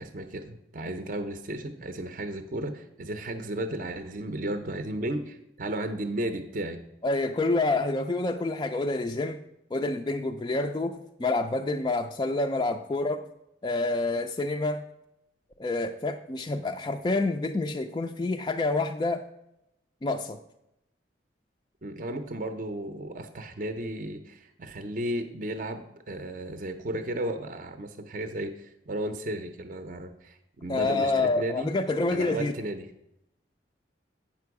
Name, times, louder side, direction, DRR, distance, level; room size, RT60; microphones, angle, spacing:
voice 1, 0.0-6.8 21.8-31.7 32.1-32.9, right 1 dB, 45° right, 8 dB, 0.5 m, -34 dB
voice 2, 7.0-9.4 9.7-13.2 13.6-14.8 15.6-19.2 20.0-20.4 30.7-32.5, left 2 dB, 25° left, 5 dB, 0.3 m, -28 dB
8.6 x 6.0 x 4.7 m, 0.84 s
head